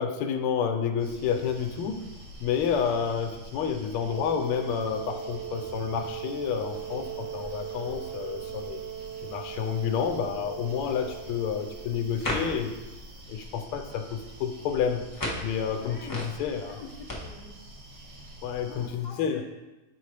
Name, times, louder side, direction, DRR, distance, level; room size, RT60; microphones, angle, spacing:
voice 1, 0.0-2.0 2.4-8.8 9.2-12.7 13.3-16.8 18.4-19.4, left 7 dB, 90° left, 5 dB, 1.5 m, -30 dB
sound 1, 1.0-18.9, right 1 dB, 90° right, 2.2 m, -47 dB
Wind instrument woodwind instrument, 4.1-11.9, right 10 dB, 65° right, 1.6 m, -39 dB
sound 2, 11.0-17.1, left 1 dB, 30° left, 0.3 m, -38 dB
voice 2, 15.8-16.4 16.7-17.6 18.6-19.4, left 5 dB, 70° left, -1 dB, 1.0 m, -45 dB
6.9 x 4.6 x 3.2 m, 1.1 s
omnidirectional pair, 2.4 m